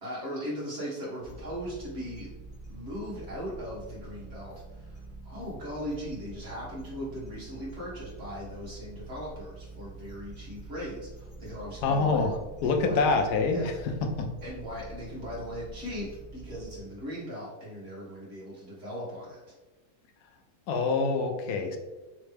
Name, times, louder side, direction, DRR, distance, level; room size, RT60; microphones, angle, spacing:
voice 1, 0.0-2.3 2.7-12.3 12.6-13.0 13.5-13.7 14.4-19.6, equal, 40° right, -7 dB, 1.8 m, -39 dB
sound 1, 1.2-16.8, right 3 dB, 40° left, 0.3 m, -46 dB
voice 2, 11.8-12.3 12.6-13.7 20.7-21.8, left 4 dB, 80° left, 4 dB, 1.1 m, -25 dB
3.9 x 3.2 x 3.3 m, 1.1 s
omnidirectional pair, 1.7 m